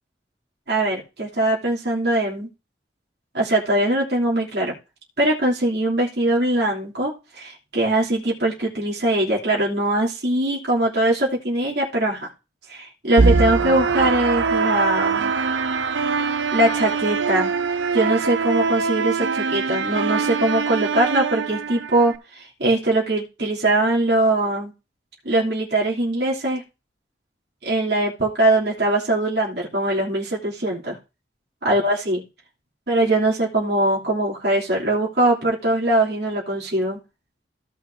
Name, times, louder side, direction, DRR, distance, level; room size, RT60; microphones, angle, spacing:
voice 1, 0.7-2.5 3.3-4.7 5.2-12.3 12.7-15.3 16.5-17.5 17.9-24.7 25.2-26.6 27.6-31.0 31.6-32.2 32.9-37.0, right 1 dB, 65° right, -5 dB, 3.0 m, -21 dB
sound 1, 13.2-22.2, right 4 dB, 80° right, 0.6 m, -23 dB
16.0 x 5.8 x 2.7 m, 0.29 s
head